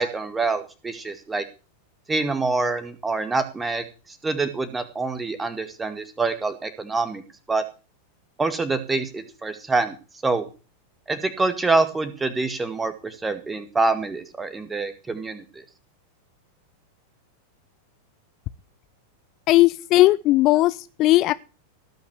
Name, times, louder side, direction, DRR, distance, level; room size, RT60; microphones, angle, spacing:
voice 1, 0.0-1.4 2.1-7.2 7.5-7.6 8.4-9.9 10.2-10.5 11.1-15.6, right 3 dB, 10° right, 11 dB, 2.1 m, -26 dB
voice 2, 19.5-21.3, left 17 dB, 40° left, 15 dB, 0.6 m, -17 dB
18.0 x 6.0 x 8.1 m, 0.33 s
figure-of-eight pair, 90°, 0 cm